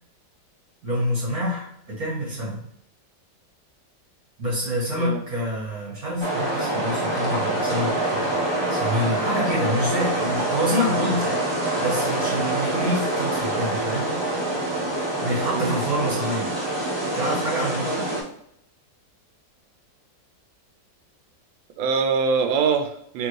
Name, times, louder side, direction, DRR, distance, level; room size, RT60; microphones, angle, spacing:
voice 1, 0.8-2.6 4.4-11.4 11.8-14.1 15.2-16.5 17.1-18.1, equal, 50° right, -7 dB, 2.0 m, -27 dB
sound 1, 6.2-18.2, right 1 dB, 20° right, 0.7 m, -25 dB
voice 2, 21.8-23.3, right 5 dB, 90° right, 6 dB, 1.3 m, -23 dB
4.4 x 3.0 x 3.1 m, 0.72 s
omnidirectional pair, 2.0 m